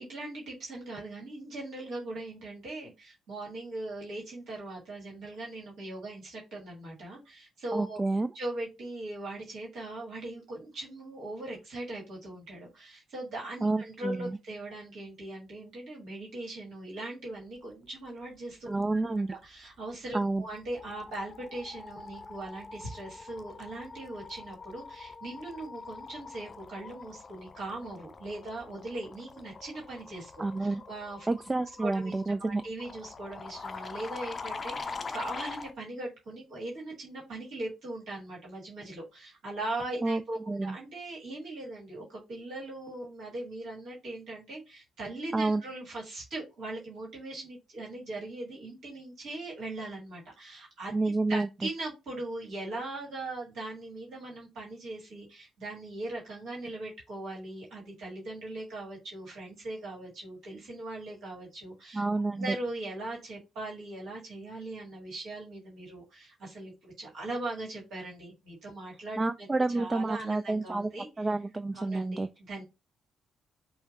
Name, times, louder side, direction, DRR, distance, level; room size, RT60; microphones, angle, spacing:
voice 1, 0.0-8.0 8.3-19.0 19.3-31.3 31.8-50.9 51.3-62.0 62.4-71.3 71.7-72.6, right 2 dB, 60° right, 1.6 m, -40 dB
voice 2, 7.7-8.3 13.6-14.4 18.7-19.3 20.1-20.4 30.4-30.8 31.3-32.6 40.0-40.2 40.5-40.8 45.3-45.6 50.9-51.5 61.9-62.6 69.2-70.9 71.2-72.3, right 2 dB, 25° right, 0.3 m, -29 dB
sound 1, 19.9-20.2 20.5-35.7, left 4 dB, 35° left, 0.5 m, -44 dB
5.5 x 2.2 x 4.0 m
figure-of-eight pair, 40°, 0 cm